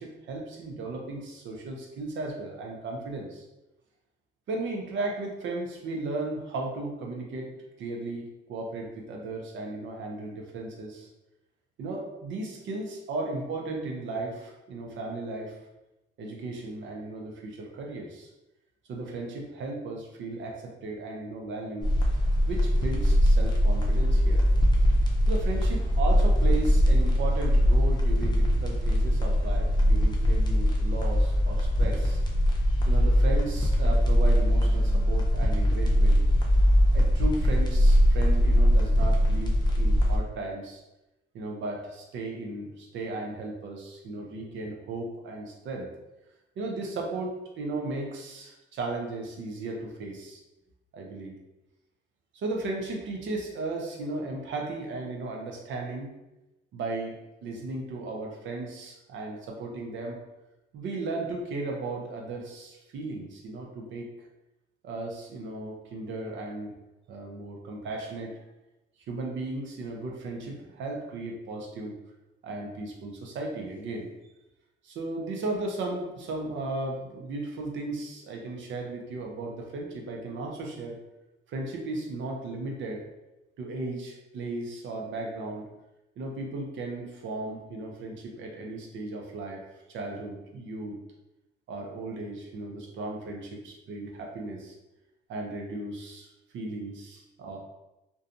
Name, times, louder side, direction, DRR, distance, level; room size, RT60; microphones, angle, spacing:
voice 1, 0.0-3.4 4.5-7.5 7.8-11.1 11.8-15.6 16.2-18.3 18.9-21.9 22.5-24.4 25.3-32.2 32.9-36.2 36.9-40.8 41.3-45.9 46.6-50.4 50.9-51.3 52.3-56.1 56.7-57.1 57.4-60.2 60.7-64.1 64.8-66.7 67.1-68.4 69.1-71.9 72.4-74.1 74.8-81.0 81.5-83.0 83.6-85.6 86.2-89.6 89.9-91.0 91.7-94.8 95.3-96.3 96.5-97.6, right 2 dB, 70° right, 1 dB, 0.6 m, -35 dB
sound 1, 21.8-40.2, equal, 20° left, 0.6 m, -22 dB
2.6 x 2.3 x 2.5 m, 0.97 s
cardioid pair, 90°, 20 cm